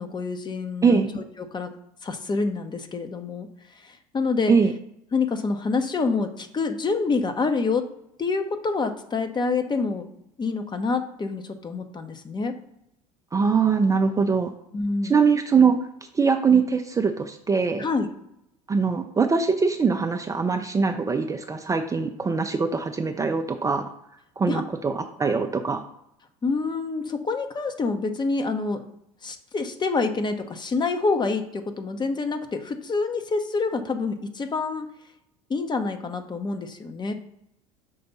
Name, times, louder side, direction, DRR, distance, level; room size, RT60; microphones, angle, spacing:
voice 1, 0.0-1.7 2.0-3.5 3.8-4.5 5.1-7.9 8.2-10.1 10.4-12.5 14.7-15.1 17.8-18.1 24.5-24.6 26.4-28.8 29.2-34.9 35.5-37.1, left 4 dB, 25° left, 7 dB, 0.8 m, -27 dB
voice 2, 13.3-14.5 15.0-15.8 16.1-17.9 18.7-23.9 24.4-25.8, right 5 dB, 20° right, 5 dB, 0.5 m, -22 dB
5.5 x 3.4 x 5.4 m, 0.78 s
hypercardioid pair, 75°, 19 cm